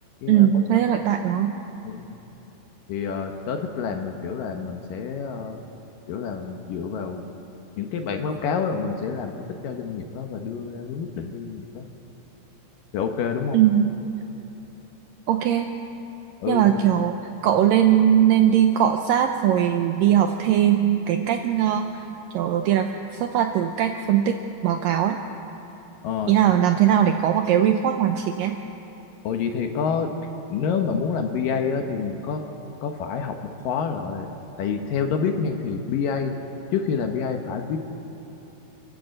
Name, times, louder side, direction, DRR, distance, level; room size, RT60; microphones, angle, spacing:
voice 1, 0.3-1.5 13.5-13.9 15.3-15.7 16.5-22.1 22.3-24.4 24.6-25.2 26.3-28.6, right 10 dB, 85° right, 6 dB, 2.0 m, -20 dB
voice 2, 2.9-5.6 6.1-7.2 7.8-11.9 12.9-13.6 16.4-16.7 26.0-26.3 29.2-30.2 30.5-32.4 32.8-33.3 33.6-34.3 34.6-36.3 36.7-37.8, left 6 dB, 70° left, 5 dB, 2.3 m, -28 dB
29.0 x 12.0 x 7.7 m, 3.0 s
omnidirectional pair, 4.7 m